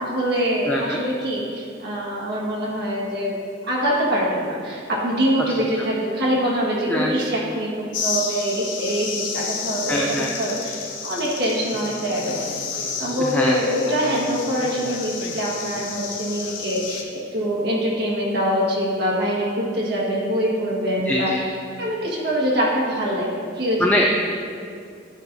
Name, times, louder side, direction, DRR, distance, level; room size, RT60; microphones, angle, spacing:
voice 1, 0.0-3.3 3.6-12.4 12.7-24.0, equal, 60° right, -5 dB, 1.6 m, -24 dB
voice 2, 0.7-1.0 6.9-7.2 9.9-10.4 13.2-13.6 21.1-21.4 23.8-24.1, left 1 dB, 10° left, -1 dB, 0.3 m, -23 dB
sound 1, 7.9-17.0, left 5 dB, 85° left, 0.7 m, -31 dB
9.8 x 5.9 x 2.7 m, 2.3 s
head